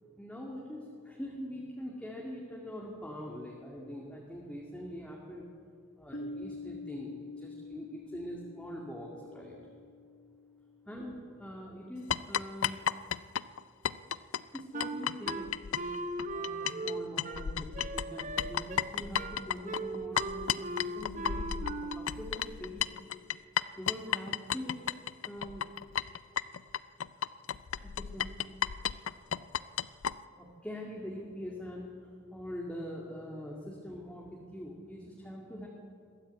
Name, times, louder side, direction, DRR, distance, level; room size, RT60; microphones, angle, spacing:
voice 1, 0.2-5.5 6.0-9.6 10.9-12.9 14.5-15.9 16.3-21.5 22.0-22.9 23.8-24.8 25.2-25.7 27.8-28.4 30.4-35.7, equal, 5° left, -3 dB, 2.3 m, -43 dB
Piano, 6.1-11.5, left 3 dB, 50° left, 1.2 m, -46 dB
sound 1, 12.1-16.9 17.2-30.1, left 9 dB, 75° left, 0.5 m, -33 dB
Wind instrument woodwind instrument, 14.7-22.2, right 2 dB, 35° right, 1.1 m, -38 dB
21.5 x 15.0 x 8.3 m, 2.2 s
head